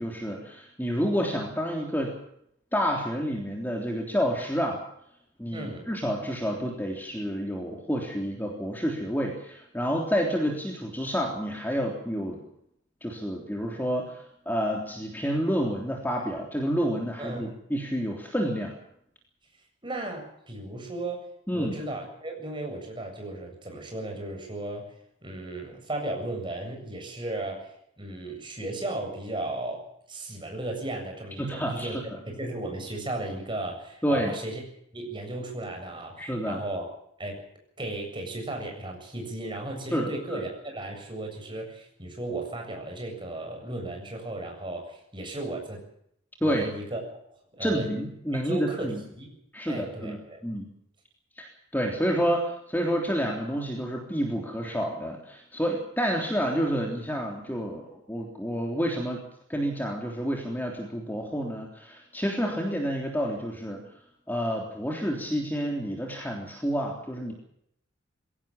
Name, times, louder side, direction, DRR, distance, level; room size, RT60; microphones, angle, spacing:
voice 1, 0.0-2.1 2.7-4.8 5.4-12.4 13.0-18.7 21.5-21.7 31.4-32.2 34.0-34.3 36.2-36.6 39.9-40.4 46.4-46.6 47.6-49.0 49.5-50.2 50.4-50.7 51.4-59.2 59.5-63.8 64.3-67.3, equal, 10° left, 0 dB, 3.4 m, -29 dB
voice 2, 5.5-5.9 17.2-17.5 19.8-21.3 21.5-24.9 25.2-32.0 32.3-34.6 34.9-36.8 37.2-37.4 37.8-45.8 46.4-47.0 47.3-47.9 48.4-49.3 49.7-50.4, right 2 dB, 25° right, 2 dB, 7.6 m, -35 dB
22.5 x 17.5 x 7.3 m, 0.73 s
head